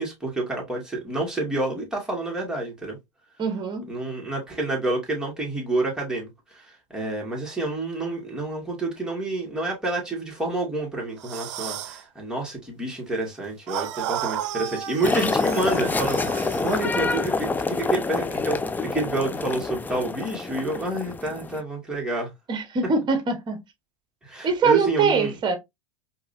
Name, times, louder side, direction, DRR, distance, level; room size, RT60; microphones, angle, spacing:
voice 1, 0.0-3.0 3.9-22.3 24.2-25.3, right 2 dB, 5° right, 2.3 m, -29 dB
voice 2, 3.4-3.9 22.5-23.6 24.4-25.6, right 5 dB, 30° right, 1.3 m, -23 dB
sound 1, 11.2-12.0 13.7-16.8, right 11 dB, 70° right, 0.6 m, -33 dB
sound 2, 15.0-21.6, left 3 dB, 10° left, 0.4 m, -27 dB
4.6 x 2.8 x 2.8 m
hypercardioid pair, 100°, 16 cm